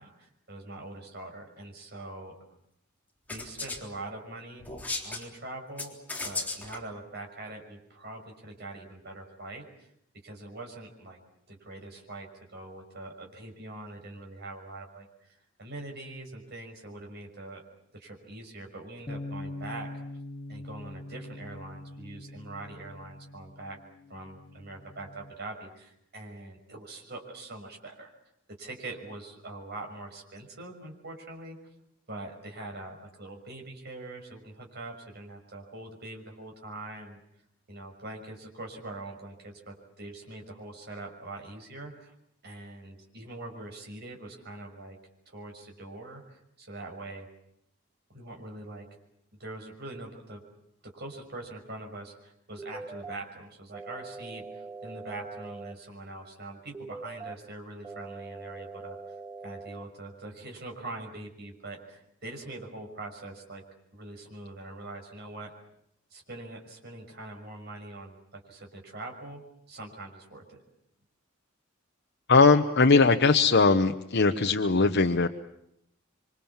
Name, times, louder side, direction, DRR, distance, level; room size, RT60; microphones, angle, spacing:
voice 1, 0.0-2.6 3.3-4.7 5.0-6.0 6.2-9.9 10.2-11.2 11.5-17.6 17.9-19.9 20.5-23.8 24.1-28.1 28.5-31.6 32.1-37.2 37.7-42.1 42.4-45.0 45.3-47.3 48.1-48.9 49.4-50.4 50.8-59.0 59.4-63.6 63.9-65.5 66.1-69.4 69.7-70.6, right 2 dB, 55° right, 2 dB, 6.1 m, -43 dB
sound 1, 3.3-3.8 4.6-5.2 5.8-6.8, left 3 dB, 10° left, 3.7 m, -35 dB
Bass guitar, 19.1-25.3, left 1 dB, 25° left, 0.9 m, -43 dB
sound 2, 52.6-53.2 53.7-55.7 56.7-57.4 57.8-59.8, right 4 dB, 15° right, 1.1 m, -42 dB
voice 2, 72.3-75.3, left 4 dB, 55° left, 5 dB, 1.0 m, -20 dB
27.0 x 25.0 x 7.2 m, 0.76 s
head